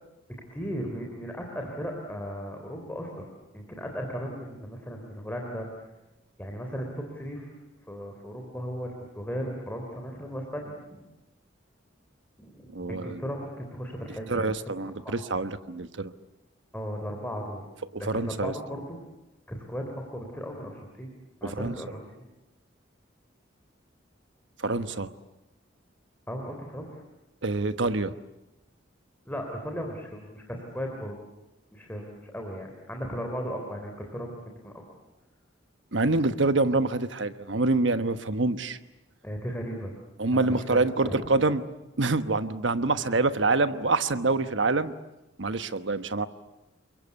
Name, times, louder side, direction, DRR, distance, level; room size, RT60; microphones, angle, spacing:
voice 1, 0.5-5.9 6.4-7.5 7.9-11.0 12.4-15.2 16.7-17.6 18.0-19.0 19.5-19.8 20.1-21.1 21.4-22.3 26.3-26.9 29.2-31.2 31.7-34.4 34.6-34.7 39.2-39.9 40.3-41.4, equal, 10° left, 1 dB, 3.5 m, -36 dB
voice 2, 12.7-13.2 14.3-16.1 17.9-18.5 21.6-21.7 24.6-25.1 27.4-28.1 35.9-38.8 40.2-41.6 42.0-44.9 45.4-46.3, right 3 dB, 70° right, 11 dB, 1.2 m, -26 dB
28.0 x 23.0 x 8.4 m, 0.98 s
head